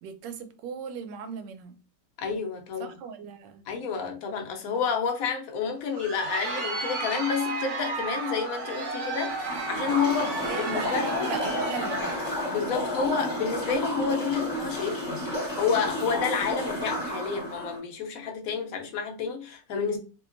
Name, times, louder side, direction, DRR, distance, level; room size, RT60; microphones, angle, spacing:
voice 1, 0.0-1.8 2.8-3.6 10.2-12.2, right 6 dB, 85° right, 1.2 m, -38 dB
voice 2, 2.2-2.9 3.7-11.3 12.5-15.3 15.6-20.0, left 6 dB, 65° left, 1.0 m, -29 dB
Crowd, 5.8-12.3, right 3 dB, 55° right, 0.9 m, -33 dB
sound 1, 9.1-17.8, left 1 dB, 15° left, 1.0 m, -31 dB
3.6 x 2.8 x 2.5 m
omnidirectional pair, 1.9 m